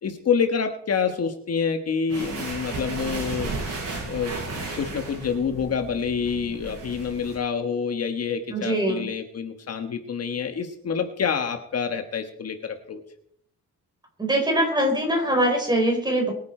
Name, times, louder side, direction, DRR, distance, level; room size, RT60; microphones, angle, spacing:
voice 1, 0.0-3.5 4.0-13.0, left 6 dB, 50° left, 6 dB, 1.5 m, -27 dB
sound 1, 2.1-7.4, right 3 dB, 50° right, 7.3 m, -34 dB
voice 2, 8.5-9.1 14.2-16.3, right 1 dB, 15° right, 3 dB, 4.3 m, -22 dB
23.5 x 9.5 x 4.5 m, 0.67 s
wide cardioid pair, 150°, 31 cm